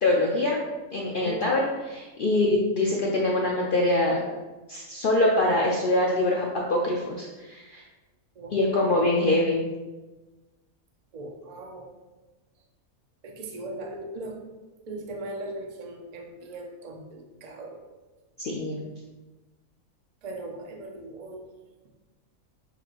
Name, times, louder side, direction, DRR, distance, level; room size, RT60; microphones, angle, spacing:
voice 1, 0.0-0.6 0.9-1.6 1.9-4.2 4.7-7.8 8.5-9.7 18.4-18.8, left 2 dB, 75° left, -2 dB, 0.5 m, -24 dB
voice 2, 1.2-1.5 2.3-2.4 8.4-9.1 11.1-11.9 13.2-14.4 14.9-17.8 20.2-21.4, right 2 dB, 60° right, 2 dB, 0.4 m, -39 dB
6.8 x 2.5 x 3.0 m, 1.2 s
omnidirectional pair, 1.5 m